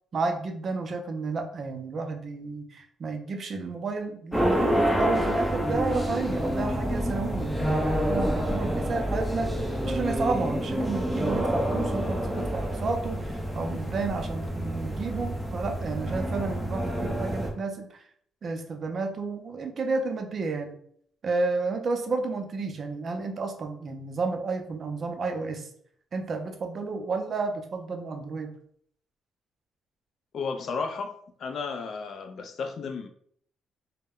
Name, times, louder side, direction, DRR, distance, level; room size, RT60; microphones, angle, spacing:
voice 1, 0.1-9.5 9.9-17.9 18.4-20.8 21.2-25.7 26.1-28.5, right 3 dB, 50° right, 4 dB, 0.4 m, -31 dB
sound 1, 4.3-17.5, equal, 5° left, 0.5 m, -28 dB
voice 2, 30.3-33.1, left 5 dB, 60° left, 6 dB, 0.3 m, -33 dB
2.1 x 2.0 x 3.5 m, 0.63 s
cardioid pair, 90°, 0 cm